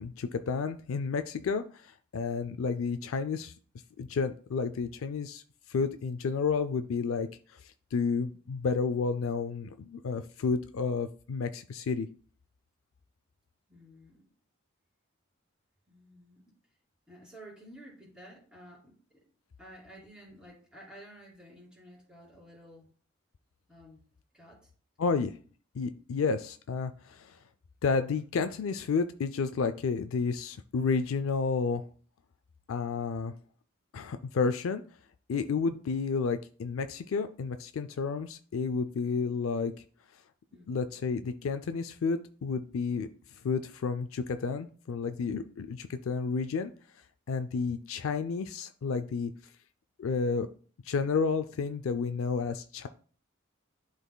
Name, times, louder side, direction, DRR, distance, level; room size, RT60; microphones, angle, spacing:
voice 1, 0.0-3.5 4.0-5.4 5.7-7.3 7.9-12.1 25.0-25.3 25.7-27.4 27.8-31.8 32.7-33.3 33.9-34.8 35.3-39.7 40.7-43.1 43.4-46.7 47.3-49.3 50.0-50.5 50.9-52.9, left 5 dB, 75° left, 10 dB, 0.4 m, -31 dB
voice 2, 13.7-14.2 15.9-16.4 17.1-19.2 19.6-22.9 23.7-24.0 24.3-24.7 25.1-25.2 40.5-40.8, equal, 5° right, -5 dB, 2.7 m, -52 dB
11.0 x 4.1 x 2.2 m, 0.42 s
head